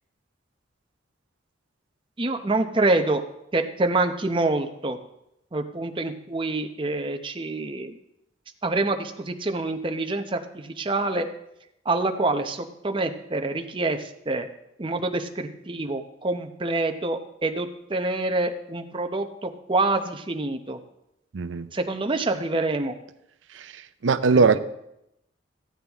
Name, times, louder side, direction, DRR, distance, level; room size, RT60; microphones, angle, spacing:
voice 1, 2.2-3.2 3.5-5.0 5.5-8.0 8.6-11.3 11.8-14.5 14.8-20.8 21.7-22.9 24.3-24.6, right 2 dB, 25° right, 5 dB, 0.7 m, -26 dB
voice 2, 21.3-21.7 23.5-24.6, right 4 dB, 80° right, 12 dB, 0.6 m, -21 dB
15.0 x 8.8 x 3.5 m, 0.82 s
head